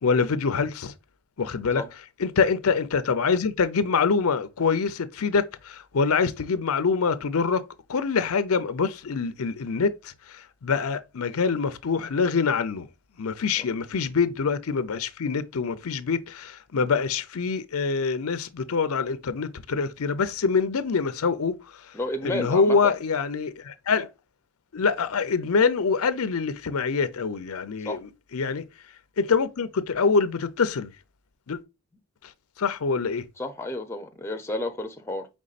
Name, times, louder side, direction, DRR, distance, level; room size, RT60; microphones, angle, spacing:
voice 1, 0.0-0.9 1.4-1.8 2.2-7.6 7.9-12.9 13.2-21.5 22.2-24.1 24.7-28.6 29.2-30.9 31.5-31.6 32.6-33.2, left 5 dB, 80° left, 0.6 m, -25 dB
voice 2, 21.9-23.0 27.8-28.0 33.4-35.3, left 1 dB, 10° left, 0.6 m, -31 dB
5.2 x 3.5 x 2.4 m
head